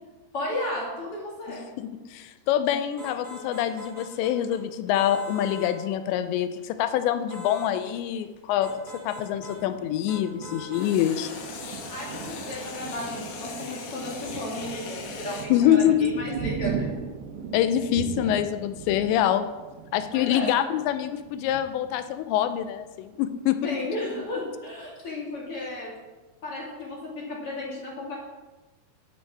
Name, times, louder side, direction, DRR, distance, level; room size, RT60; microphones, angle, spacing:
voice 1, 0.3-1.7 11.9-16.9 20.1-20.5 23.6-25.9 26.4-28.1, left 1 dB, 45° left, -3 dB, 2.0 m, -34 dB
voice 2, 1.8-8.7 9.1-11.3 15.5-16.1 17.5-19.5 19.9-23.6, left 11 dB, 85° left, 10 dB, 2.8 m, -25 dB
sound 1, 3.0-4.6 4.9-5.8 7.3-7.7 8.6-9.6 10.1-10.9, left 1 dB, 55° right, 0.6 m, -42 dB
sound 2, 4.5-9.6 10.7-15.5, left 4 dB, 70° left, 1.9 m, -40 dB
Thunder, 8.7-23.0 23.5-23.6 23.9-24.5, right 6 dB, 75° right, 3.1 m, -38 dB
11.0 x 9.4 x 4.7 m, 1.2 s
omnidirectional pair, 5.2 m